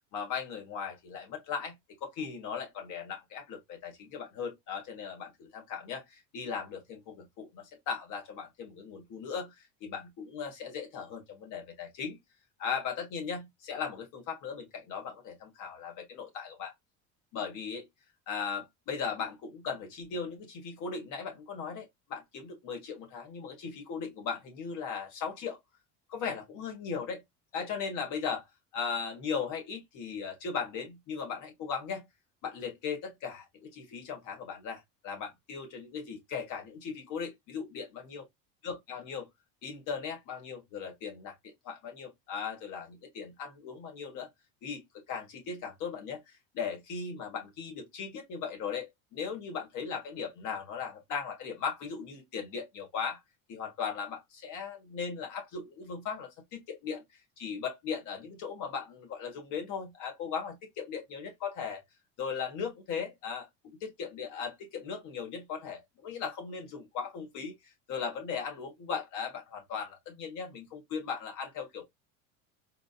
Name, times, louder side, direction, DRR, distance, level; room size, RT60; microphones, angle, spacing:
voice 1, 0.1-1.7 2.0-12.2 12.6-16.7 17.3-17.8 18.3-25.6 26.1-27.2 27.5-28.4 28.7-32.1 32.4-38.2 38.6-39.3 39.6-44.3 44.6-53.2 53.5-57.0 57.4-61.8 62.2-67.5 67.9-71.8, left 6 dB, 55° left, 1.6 m, -38 dB
3.8 x 2.6 x 2.4 m
cardioid pair, 135°, 36 cm